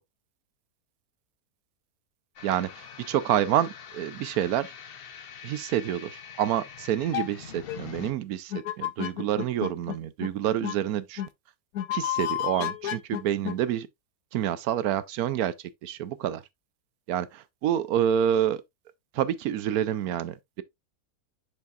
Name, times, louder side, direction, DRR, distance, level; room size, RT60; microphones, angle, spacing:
sound 1, 2.4-8.1, left 7 dB, 50° left, 0.7 m, -44 dB
voice 1, 2.4-4.7 5.4-11.2 11.9-13.9 14.3-15.5 15.8-16.4 17.1-18.6 19.1-20.6, right 10 dB, 80° right, 1.1 m, -28 dB
sound 2, 7.1-7.3 7.7-7.8 8.5-10.0 10.2-10.3 10.6-10.7 11.2-11.3 11.7-13.5, left 12 dB, 70° left, 1.2 m, -30 dB
6.7 x 6.5 x 2.4 m
omnidirectional pair, 1.6 m